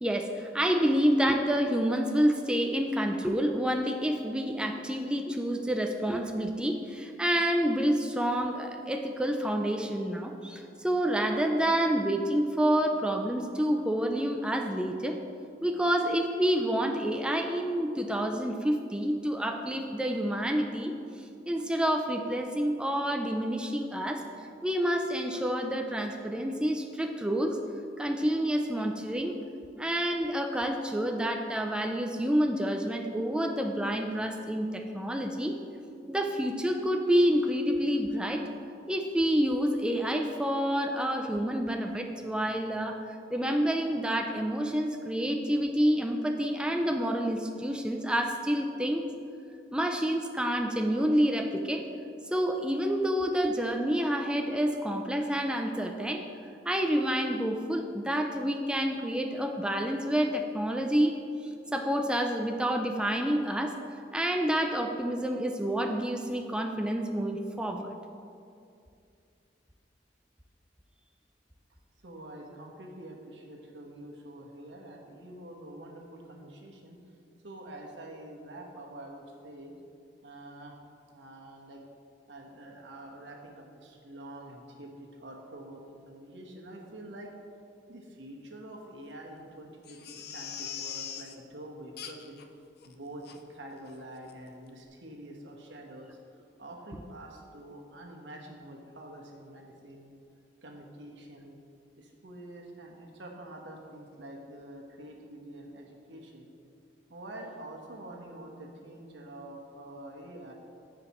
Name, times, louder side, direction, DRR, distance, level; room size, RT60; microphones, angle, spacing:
voice 1, 0.0-15.2 15.6-20.9 21.5-24.2 24.6-27.6 28.0-29.4 29.8-35.6 36.1-38.4 38.9-49.0 49.7-51.8 52.3-56.2 56.7-61.2 61.7-63.7 64.1-67.9, equal, 5° right, 3 dB, 0.4 m, -28 dB
voice 2, 72.0-77.0 77.4-79.7 80.2-80.7 81.1-81.8 82.3-84.9 85.2-87.3 87.9-92.4 92.8-96.1 96.6-100.1 100.6-101.6 102.0-106.5 107.1-110.5, right 1 dB, 80° right, 0 dB, 1.2 m, -46 dB
Crying sobbing, 89.8-91.3 92.0-92.4 92.8-92.9 93.2-93.4 93.9-94.0 94.3-94.4, left 8 dB, 60° left, 0.6 m, -41 dB
15.0 x 5.0 x 3.1 m, 2.5 s
head